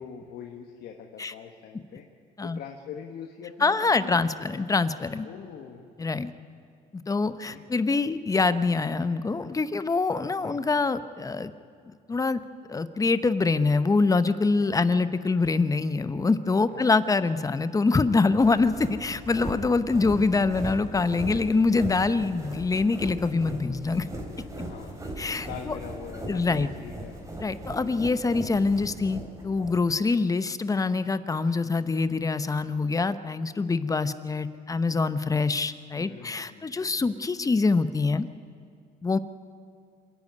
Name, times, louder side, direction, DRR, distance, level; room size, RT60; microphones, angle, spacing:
voice 1, 0.0-2.0 2.4-4.4 5.2-5.9 7.2-7.6 10.4-10.7 14.9-15.0 16.7-16.9 24.6-25.1 25.3-27.2 35.9-37.0, left 7 dB, 70° left, 3 dB, 1.4 m, -43 dB
voice 2, 3.6-5.3 6.0-6.3 6.9-11.5 12.1-12.4 12.7-24.1 25.2-25.8 26.3-26.7 27.4-38.3 39.0-39.2, left 3 dB, 20° left, 13 dB, 0.8 m, -25 dB
sound 1, 18.4-29.8, right 1 dB, 20° right, 3.9 m, -38 dB
26.5 x 10.5 x 9.5 m, 2.3 s
cardioid pair, 110°, 17 cm